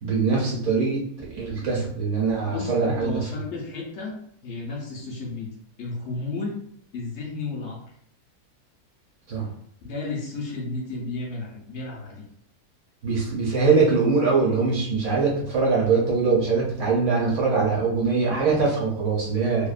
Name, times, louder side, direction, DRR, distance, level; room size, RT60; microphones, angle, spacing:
voice 1, 0.0-3.3 9.3-9.5 13.0-19.7, right 4 dB, 60° right, -3 dB, 0.9 m, -22 dB
voice 2, 2.4-4.2 4.4-5.5 5.8-6.5 6.9-7.8 9.8-12.2, left 3 dB, 70° left, -1 dB, 0.7 m, -33 dB
2.7 x 2.1 x 2.4 m, 0.65 s
omnidirectional pair, 1.7 m